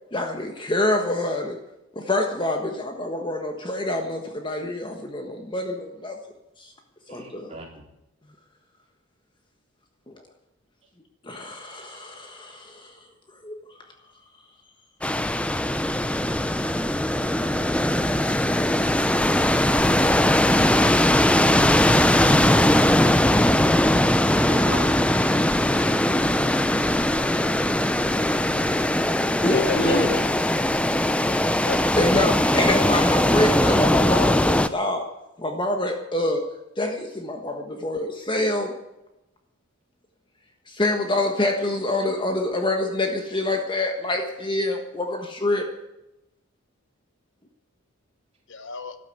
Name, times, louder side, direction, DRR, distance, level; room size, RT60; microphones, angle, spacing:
voice 1, 0.1-1.6 1.9-6.2 6.6-6.7 7.1-7.6 10.1-10.2 11.2-13.0 13.4-13.6 29.4-30.2 32.0-35.1 35.4-36.4 36.8-38.7 40.7-45.7, left 1 dB, 20° left, 4 dB, 1.3 m, -26 dB
voice 2, 7.1-7.8 24.4-24.9 28.2-28.9, right 1 dB, 30° right, -2 dB, 3.9 m, -38 dB
sound 1, 15.0-34.7, left 1 dB, 5° left, 0.5 m, -20 dB
voice 3, 29.5-30.2 31.2-32.1 48.5-49.0, left 4 dB, 55° left, 10 dB, 1.0 m, -33 dB
13.0 x 12.5 x 8.3 m, 0.94 s
head